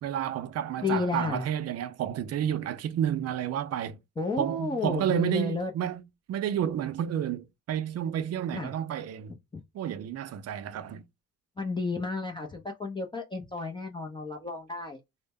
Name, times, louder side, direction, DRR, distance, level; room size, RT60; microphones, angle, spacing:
voice 1, 0.0-4.0 4.4-6.0 6.3-9.3 9.7-11.0, right 9 dB, 55° right, 0.5 m, -30 dB
voice 2, 0.8-1.5 4.2-5.7 8.5-8.7 9.5-9.6 11.6-15.0, left 3 dB, 15° left, 0.4 m, -32 dB
2.0 x 2.0 x 3.4 m
cardioid pair, 90°, 30 cm